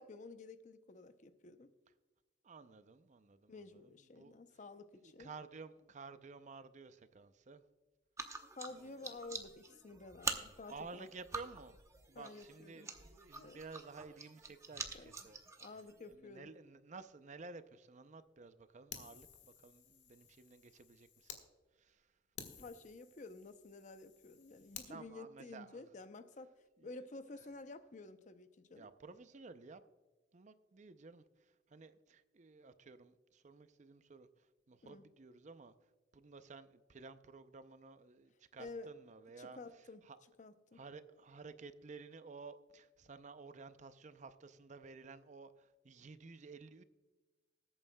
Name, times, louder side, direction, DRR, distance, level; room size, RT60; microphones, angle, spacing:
voice 1, 0.0-1.7 3.5-5.3 8.5-11.1 12.1-12.9 13.4-13.6 14.9-15.1 15.6-16.5 22.6-26.5 26.8-28.9 34.8-35.0 38.6-38.9 39.4-40.0 40.4-40.8, left 3 dB, 40° left, 11 dB, 0.6 m, -51 dB
voice 2, 2.4-4.6 4.9-7.6 8.7-9.3 10.7-11.8 12.1-15.4 16.1-21.3 21.8-22.1 24.8-25.8 26.8-26.9 28.8-29.8 30.3-35.7 36.1-40.2 40.7-46.8, right 4 dB, 40° right, 12 dB, 0.5 m, -54 dB
sound 1, 8.2-16.2, right 3 dB, 15° right, 0.8 m, -46 dB
Fire, 18.9-21.4 21.9-22.0 22.4-24.9, left 8 dB, 85° left, 1.5 m, -54 dB
20.5 x 8.9 x 2.2 m, 1.3 s
head